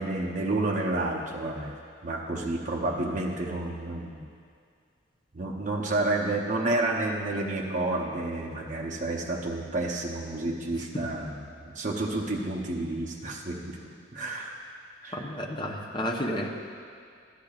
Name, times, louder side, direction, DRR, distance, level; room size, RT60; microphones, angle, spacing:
voice 1, 0.0-1.7 2.0-4.2 5.3-13.8 14.1-14.6 15.0-15.3, right 2 dB, 40° right, -1 dB, 0.8 m, -30 dB
voice 2, 15.1-16.5, left 1 dB, 25° left, -1 dB, 0.8 m, -31 dB
14.5 x 10.0 x 2.4 m, 2.3 s
head